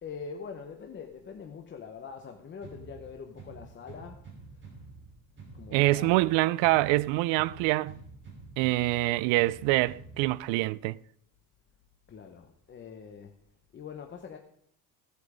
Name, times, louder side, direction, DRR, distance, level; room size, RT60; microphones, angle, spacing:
voice 1, 0.0-4.9 5.5-6.3 7.6-7.7 12.1-13.3 13.7-14.4, left 6 dB, 25° left, 0.9 m, -44 dB
sound 1, 2.6-10.6, right 3 dB, 25° right, 3.3 m, -49 dB
voice 2, 5.7-8.0 8.6-11.0, right 20 dB, 85° right, 0.5 m, -25 dB
16.5 x 8.4 x 5.0 m
cardioid pair, 150°, 44 cm